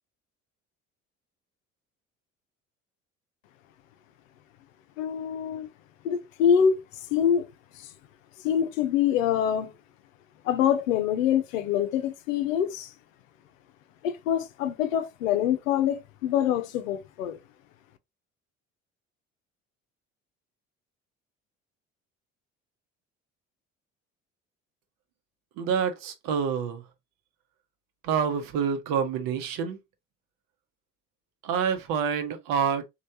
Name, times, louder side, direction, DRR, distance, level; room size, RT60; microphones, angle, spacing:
voice 1, 5.0-5.7 6.0-6.8 7.1-7.5 7.8-7.9 8.4-9.7 10.4-12.9 14.0-17.4, left 9 dB, 75° left, 0.5 m, -25 dB
voice 2, 25.6-26.8 28.0-29.8 31.4-32.8, right 7 dB, 55° right, 0.8 m, -27 dB
3.1 x 2.4 x 2.6 m
figure-of-eight pair, 55°, 39 cm